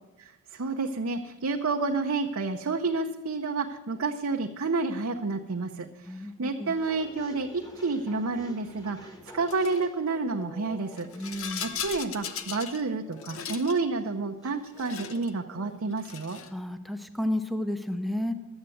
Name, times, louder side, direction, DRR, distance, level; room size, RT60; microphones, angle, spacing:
voice 1, 0.2-5.9 6.4-16.4, right 3 dB, 65° right, 3 dB, 0.7 m, -30 dB
voice 2, 6.1-6.7 11.1-11.7 16.5-18.3, left 1 dB, ahead, 7 dB, 0.6 m, -32 dB
sound 1, 6.7-16.0, equal, 15° left, 1.3 m, -50 dB
Rattle, 9.5-9.8 10.9-12.8 13.1-13.8 14.6-15.3 15.9-16.6, left 7 dB, 65° left, 0.8 m, -38 dB
12.0 x 8.0 x 7.7 m, 1.0 s
head